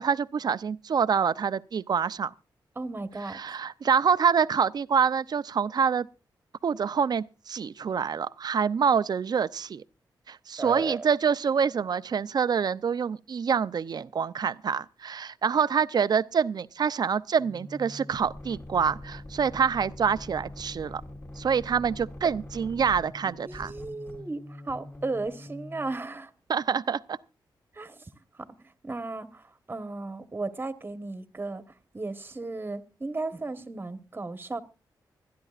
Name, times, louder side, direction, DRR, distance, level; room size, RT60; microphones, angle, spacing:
voice 1, 0.0-2.3 3.3-6.1 6.6-9.8 10.3-21.0 21.4-23.7 26.5-27.2, right 6 dB, 55° right, 0.6 m, -26 dB
voice 2, 2.7-3.4 10.6-11.1 22.2-22.3 23.4-26.3 27.7-28.1 28.3-31.6 31.9-34.6, right 3 dB, 25° right, 1.2 m, -35 dB
sound 1, 17.4-26.0, left 1 dB, 35° left, 3.1 m, -43 dB
25.5 x 10.5 x 2.5 m
cardioid pair, 80°, 8 cm